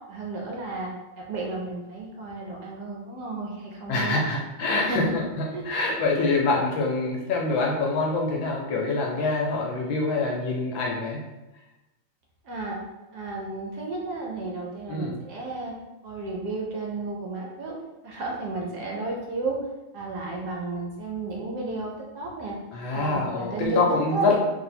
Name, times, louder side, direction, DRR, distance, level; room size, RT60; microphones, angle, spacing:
voice 1, 0.1-0.9 1.2-4.2 4.7-5.2 5.5-5.9 12.4-12.8 13.1-15.7 16.0-17.7 18.0-19.6 19.9-22.6 22.9-23.8 24.1-24.4, right 3 dB, 70° right, -2 dB, 1.0 m, -32 dB
voice 2, 3.9-11.2 14.9-15.2 22.7-24.4, left 3 dB, 75° left, -2 dB, 1.2 m, -25 dB
3.3 x 2.7 x 4.1 m, 1.0 s
omnidirectional pair, 2.4 m